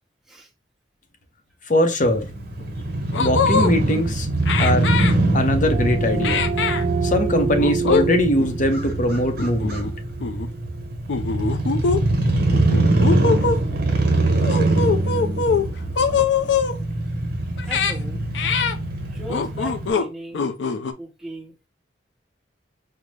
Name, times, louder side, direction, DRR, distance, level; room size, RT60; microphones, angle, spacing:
voice 1, 1.7-2.3 3.2-4.3 4.6-4.9 5.3-6.4 7.0-9.9, left 1 dB, 45° left, 0.7 m, -21 dB
Crow / Motorcycle, 2.0-19.9, right 2 dB, 60° right, 1.0 m, -23 dB
sound 1, 2.6-2.7 3.1-3.7 4.5-5.1 6.2-6.8 7.6-8.1 8.4-8.5 9.4-9.9 10.2-10.5 11.1-12.0 12.5-13.6 14.4-15.7 16.0-16.8 17.6-17.9 18.3-18.8 19.3-20.1 20.3-20.9, left 5 dB, 80° left, 0.5 m, -22 dB
sound 2, 5.1-10.6, right 5 dB, 40° right, 0.6 m, -29 dB
voice 2, 17.7-18.2 19.1-20.5 21.0-21.7, right 1 dB, ahead, 0.8 m, -38 dB
5.1 x 2.1 x 3.2 m
head